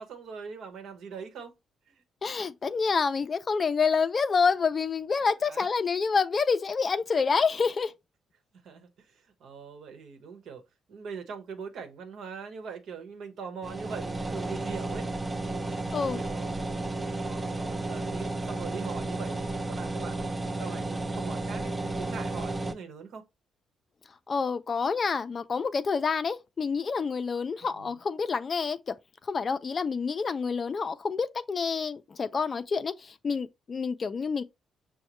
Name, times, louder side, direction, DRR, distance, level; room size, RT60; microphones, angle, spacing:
voice 1, 0.0-1.5 1.9-2.0 5.5-5.7 7.2-7.3 8.6-10.6 10.9-15.1 15.4-16.8 17.3-20.3 20.6-23.2 27.6-28.0, right 6 dB, 75° right, 1.0 m, -42 dB
voice 2, 2.2-7.9 15.9-16.2 24.3-28.9 29.2-34.4, left 5 dB, 40° left, 0.4 m, -28 dB
sound 1, 13.6-22.7, right 2 dB, 20° right, 0.6 m, -33 dB
6.1 x 2.1 x 3.0 m
cardioid pair, 90°, 0 cm